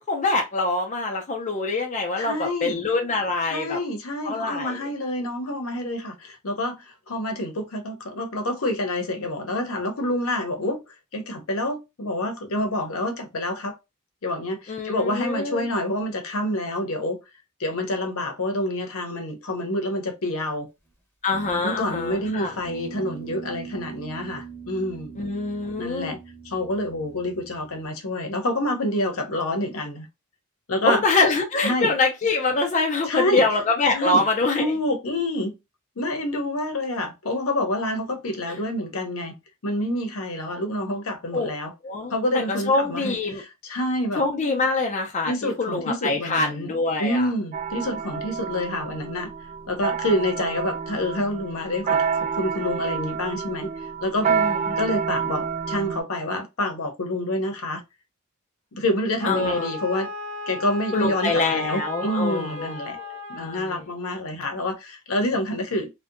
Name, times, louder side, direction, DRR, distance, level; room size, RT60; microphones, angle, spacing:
voice 1, 0.0-3.8 4.2-4.8 14.7-15.7 21.2-22.5 25.2-26.2 30.8-34.7 38.5-38.6 41.3-41.5 41.8-43.4 44.2-47.3 54.2-54.8 59.3-59.7 60.9-63.9, left 3 dB, 30° left, 0.4 m, -25 dB
voice 2, 2.2-2.8 3.4-13.8 14.2-17.2 17.6-20.7 21.6-25.2 25.8-26.2 26.4-30.1 30.7-31.0 31.6-31.9 33.1-33.4 33.9-34.2 34.6-35.5 36.0-39.4 39.6-41.7 42.1-44.2 45.3-46.7 47.0-49.3 49.7-53.7 54.0-54.3 54.8-57.8 58.7-60.1 60.5-63.0 63.3-65.9, left 1 dB, 70° left, 0.7 m, -27 dB
Guitar, 21.3-27.9, right 5 dB, 10° left, 0.8 m, -41 dB
sound 1, 47.5-56.0, right 6 dB, 35° right, 0.3 m, -28 dB
Wind instrument woodwind instrument, 59.2-63.7, left 2 dB, 60° right, 0.7 m, -35 dB
2.7 x 2.1 x 2.4 m
head